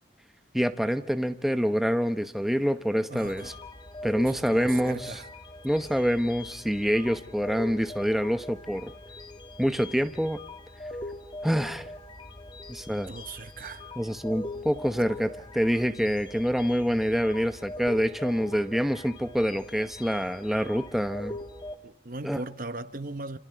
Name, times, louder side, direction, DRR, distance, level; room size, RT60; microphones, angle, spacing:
voice 1, 0.5-3.5 4.0-5.2 5.6-8.9 9.6-10.4 11.4-11.9 12.7-13.1 14.0-21.4 22.2-22.4, equal, ahead, 1.0 m, -26 dB
voice 2, 3.1-3.6 4.2-5.3 13.1-13.8 15.0-15.1 21.8-23.4, right 2 dB, 50° right, 1.0 m, -38 dB
sound 1, 3.2-21.8, left 2 dB, 25° left, 1.8 m, -42 dB
28.0 x 28.0 x 4.7 m
head